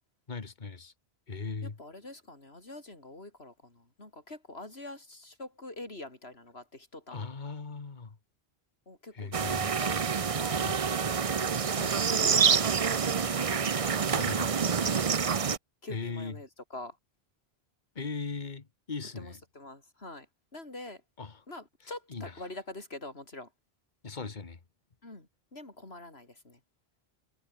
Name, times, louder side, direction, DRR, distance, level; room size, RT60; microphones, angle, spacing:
voice 1, 0.3-0.9 1.3-1.8 7.1-8.2 9.1-9.7 10.6-10.8 11.7-12.0 14.1-14.5 15.9-16.4 17.9-19.4 21.2-21.4 22.1-22.4 24.0-24.6, left 4 dB, 50° left, 1.7 m, -39 dB
voice 2, 1.6-7.3 8.9-11.5 12.0-14.1 14.7-14.8 15.8-17.0 19.2-20.3 20.5-21.0 21.5-23.5 25.0-26.6, left 2 dB, 80° left, 4.8 m, -45 dB
sound 1, 9.3-15.6, right 6 dB, 40° right, 0.7 m, -27 dB
omnidirectional pair, 1.0 m